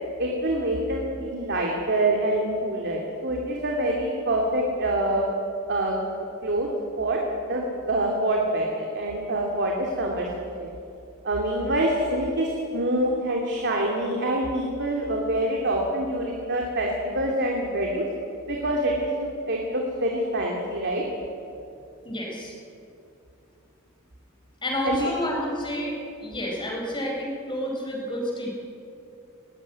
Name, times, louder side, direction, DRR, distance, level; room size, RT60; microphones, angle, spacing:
voice 1, 0.2-5.2 5.7-6.0 6.4-6.7 7.0-10.7 11.2-18.0 18.5-21.0 24.8-25.1, right 1 dB, 55° right, -1 dB, 2.8 m, -26 dB
voice 2, 22.0-22.5 24.6-25.9 26.2-28.5, equal, 25° left, -2 dB, 4.6 m, -29 dB
20.5 x 17.5 x 9.6 m, 2.6 s
head